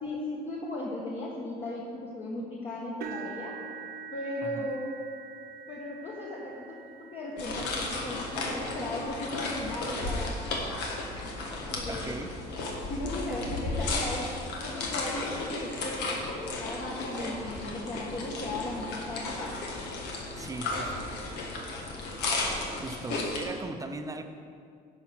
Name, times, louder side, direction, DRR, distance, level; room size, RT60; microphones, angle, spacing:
voice 1, 0.0-3.5 4.1-5.0 5.7-10.3 11.2-11.3 11.7-12.2 12.9-19.5 21.8-21.9, left 1 dB, 40° left, -5 dB, 1.4 m, -37 dB
sound 1, 3.0-11.0 11.7-11.9 12.3-12.4 13.8-13.9, right 7 dB, 65° right, 0.7 m, -46 dB
sound 2, 7.4-23.5, left 2 dB, 90° left, 1.5 m, -34 dB
voice 2, 11.8-12.3 20.4-21.1 22.7-24.2, right 3 dB, 20° right, 6 dB, 0.7 m, -39 dB
10.5 x 5.1 x 6.0 m, 2.3 s
cardioid pair, 110°, 17 cm